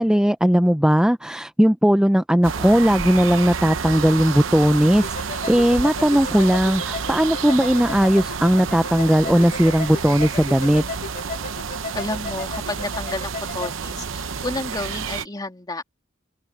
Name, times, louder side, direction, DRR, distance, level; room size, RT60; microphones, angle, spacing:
voice 1, 0.0-5.1 5.5-10.8, equal, 5° right, 0.5 m, -18 dB
sound 1, 2.4-15.3, right 6 dB, 85° right, 0.8 m, -30 dB
sound 2, 5.0-13.7, left 4 dB, 45° left, 1.3 m, -35 dB
voice 2, 11.9-15.8, left 2 dB, 20° left, 2.5 m, -31 dB
open air
head